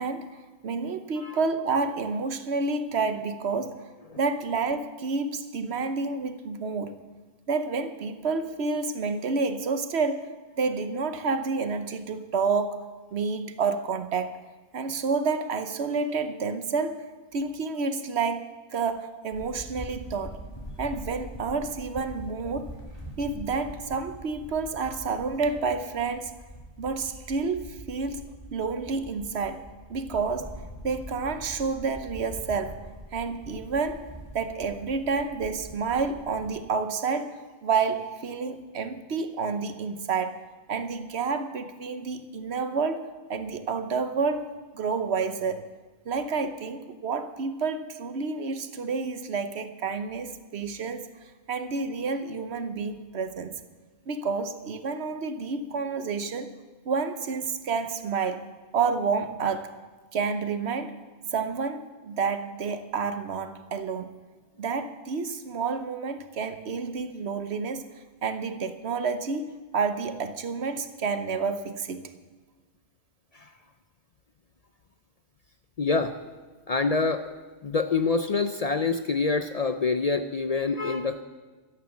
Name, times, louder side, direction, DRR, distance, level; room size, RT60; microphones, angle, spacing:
voice 1, 0.0-3.8 4.2-7.0 7.5-10.3 10.6-12.8 13.1-14.3 14.7-17.0 17.3-20.4 20.8-22.7 23.2-26.3 26.8-32.8 33.1-34.1 34.3-40.4 40.7-44.5 44.7-45.6 46.0-51.1 51.5-53.6 54.1-56.5 56.9-58.4 58.7-59.7 60.1-60.9 61.3-64.2 64.6-67.8 68.2-72.0, right 4 dB, 70° right, 10 dB, 1.2 m, -29 dB
sound 1, 19.3-36.5, equal, 20° left, 2.4 m, -43 dB
voice 2, 75.8-76.1 76.7-77.2 77.6-81.2, left 4 dB, 45° left, 9 dB, 0.5 m, -26 dB
12.5 x 10.5 x 7.1 m, 1.3 s
omnidirectional pair, 1.1 m